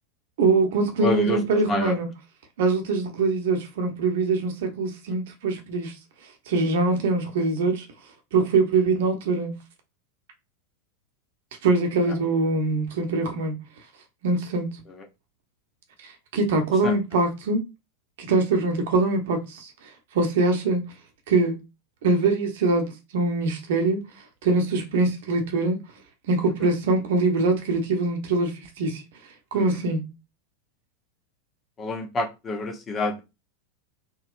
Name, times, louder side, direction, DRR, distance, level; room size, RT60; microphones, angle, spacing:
voice 1, 0.4-2.0 2.6-5.9 6.5-7.9 8.3-9.5 11.6-13.6 14.2-14.7 16.0-17.6 18.2-19.7 20.1-20.9 21.3-21.6 22.0-24.0 24.4-25.8 26.3-29.0 29.5-30.1, right 3 dB, 60° right, 0.9 m, -23 dB
voice 2, 1.0-1.4 1.7-1.9 14.9-15.0 16.8-17.0 29.5-29.6 31.8-33.2, left 2 dB, 25° left, 0.7 m, -27 dB
3.9 x 2.2 x 2.5 m
figure-of-eight pair, 85°, 0 cm